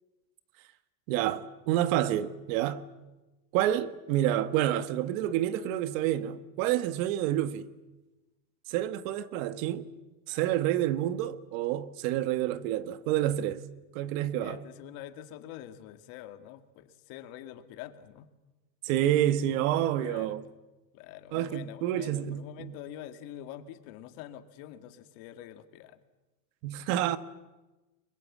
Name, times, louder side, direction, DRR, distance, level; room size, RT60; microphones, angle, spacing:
voice 1, 1.1-2.8 3.5-7.7 8.7-9.9 10.3-13.6 13.9-14.6 18.8-20.4 21.3-22.5 26.6-27.2, right 12 dB, 55° right, 1.4 m, -28 dB
voice 2, 14.4-18.3 20.0-20.4 20.9-26.0, left 12 dB, 50° left, 2.1 m, -45 dB
30.0 x 22.5 x 7.4 m
supercardioid pair, 150°, 47 cm